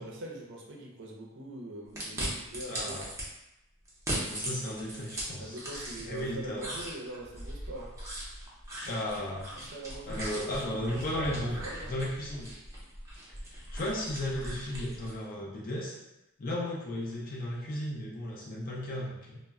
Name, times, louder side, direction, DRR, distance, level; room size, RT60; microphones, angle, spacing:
voice 1, 0.0-3.1 5.4-8.0 9.5-12.0, right 1 dB, 55° right, -1 dB, 0.5 m, -43 dB
sound 1, 2.0-3.3 3.9-6.2 6.6-15.2, right 1 dB, 15° right, 0.6 m, -39 dB
voice 2, 2.7-3.0 4.3-5.6 6.0-6.7 8.8-9.5 10.1-12.5 13.7-16.0 16.4-19.4, left 1 dB, 40° left, -3 dB, 0.6 m, -35 dB
sound 2, 4.9-5.0 5.4-9.0 9.9-13.6, equal, 65° left, 1.0 m, -47 dB
2.1 x 2.0 x 3.5 m, 0.92 s
head